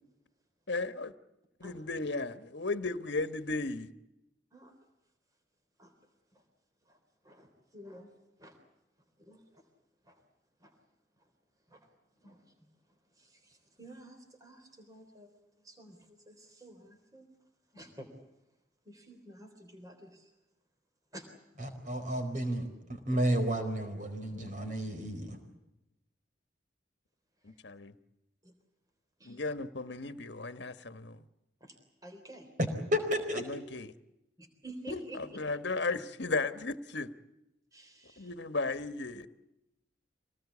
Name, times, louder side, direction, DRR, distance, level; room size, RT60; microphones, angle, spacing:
voice 1, 0.7-1.1 1.6-3.9 24.3-24.5 27.4-27.9 29.2-31.2 33.4-33.9 34.9-37.1 38.2-39.3, left 3 dB, 70° left, 11 dB, 1.3 m, -35 dB
voice 2, 7.7-8.1 8.4-8.6 9.2-9.6 10.1-10.2 10.6-10.7 11.7-11.8 12.2-12.4 13.2-15.3 15.6-16.0 16.3-17.3 17.7-18.1 18.9-20.3 21.1-21.2 28.4-28.5 29.2-29.4 31.6-31.8 32.0-32.5 34.4-35.4 37.7-38.3, right 1 dB, 20° right, 5 dB, 3.6 m, -50 dB
voice 3, 21.6-25.4 32.6-33.5, equal, 40° right, 6 dB, 4.6 m, -32 dB
26.0 x 19.0 x 8.4 m, 0.92 s
head